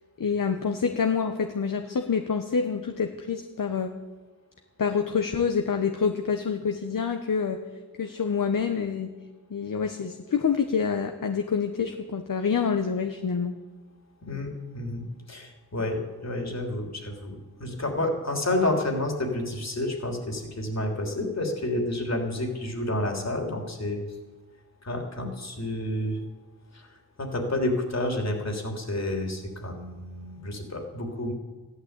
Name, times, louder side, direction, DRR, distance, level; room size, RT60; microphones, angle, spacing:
voice 1, 0.2-3.9 4.8-7.6 8.0-9.1 9.5-13.6, left 6 dB, 60° left, 6 dB, 1.1 m, -27 dB
voice 2, 14.7-24.0 24.8-26.2 26.7-26.9 27.2-31.3, left 1 dB, 45° left, 2 dB, 3.3 m, -30 dB
14.5 x 11.5 x 8.2 m, 1.3 s
wide cardioid pair, 70°, 37 cm